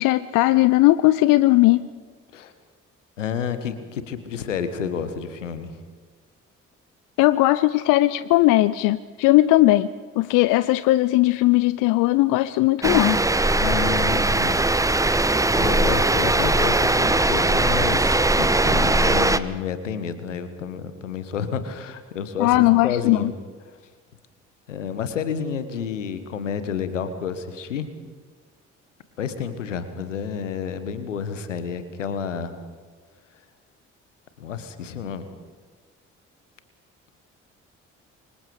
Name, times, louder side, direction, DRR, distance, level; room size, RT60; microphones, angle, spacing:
voice 1, 0.0-1.9 7.2-13.2 22.4-23.3, left 17 dB, 60° left, 16 dB, 0.7 m, -18 dB
voice 2, 3.2-5.7 13.6-14.6 15.6-22.6 22.8-23.3 24.7-27.9 29.2-32.5 34.4-35.2, left 7 dB, 80° left, 11 dB, 1.5 m, -30 dB
sound 1, 12.8-19.4, right 2 dB, 10° right, 1.0 m, -20 dB
29.0 x 24.5 x 5.2 m, 1.5 s
figure-of-eight pair, 40°, 37 cm